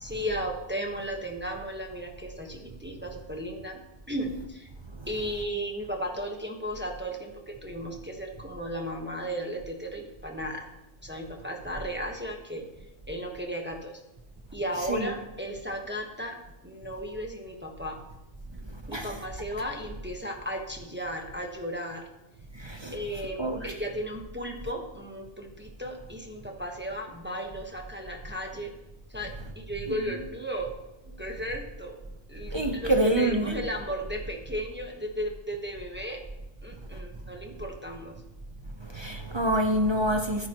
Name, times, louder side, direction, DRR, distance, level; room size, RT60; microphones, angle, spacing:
voice 1, 0.0-3.8 4.1-4.7 5.1-10.7 11.0-12.6 13.1-14.0 14.5-16.4 16.6-18.0 18.9-22.1 22.9-28.7 29.1-30.7 31.0-32.0 32.3-36.2 36.6-38.1, equal, 10° right, 1.2 m, -35 dB
voice 2, 22.6-22.9 23.4-23.7 29.9-30.0 32.5-33.6 38.9-40.5, right 1 dB, 25° right, 0.7 m, -26 dB
13.0 x 9.8 x 3.0 m
omnidirectional pair, 1.2 m